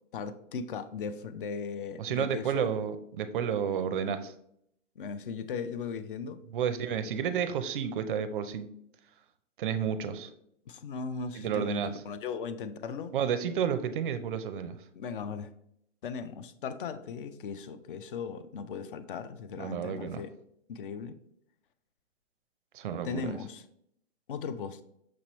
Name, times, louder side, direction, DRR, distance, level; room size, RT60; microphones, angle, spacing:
voice 1, 0.1-2.7 5.0-6.4 10.7-13.1 15.0-15.5 16.0-20.3 20.7-21.2 23.0-23.6 24.3-24.8, left 5 dB, 45° left, 12 dB, 0.4 m, -37 dB
voice 2, 2.0-4.3 6.5-8.7 9.6-10.3 11.3-12.0 13.1-14.8 19.6-20.2 22.7-23.3, right 8 dB, 45° right, 11 dB, 0.5 m, -31 dB
6.1 x 3.0 x 2.9 m, 0.75 s
hypercardioid pair, 140°, 38 cm